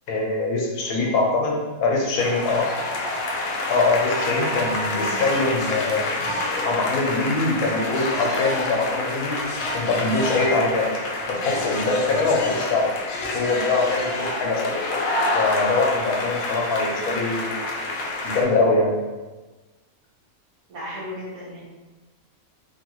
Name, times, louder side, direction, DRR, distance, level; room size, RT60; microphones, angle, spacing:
voice 1, 0.1-2.7 3.7-6.1 6.6-9.4 9.7-10.9 11.3-12.9 13.3-14.7 15.3-17.6 18.2-19.0, left 3 dB, 85° left, -1 dB, 1.1 m, -23 dB
voice 2, 0.8-1.3 2.5-2.7 3.0-3.3 20.7-21.6, left 1 dB, 80° right, -7 dB, 1.4 m, -37 dB
sound 1, 2.2-18.4, left 2 dB, 70° left, 0.9 m, -27 dB
3.2 x 2.4 x 2.9 m, 1.2 s
omnidirectional pair, 1.5 m